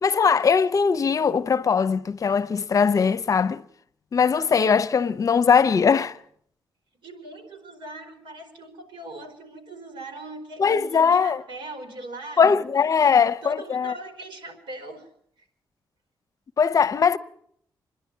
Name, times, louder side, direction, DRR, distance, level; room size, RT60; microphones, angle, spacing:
voice 1, 0.0-3.6 4.1-6.2 10.6-11.4 12.4-13.9 16.6-17.2, left 6 dB, 45° left, 0.7 m, -20 dB
voice 2, 7.0-12.7 13.0-15.1 15.4-15.5, right 1 dB, 80° right, 4.4 m, -40 dB
26.5 x 10.5 x 9.4 m
cardioid pair, 125°, 8 cm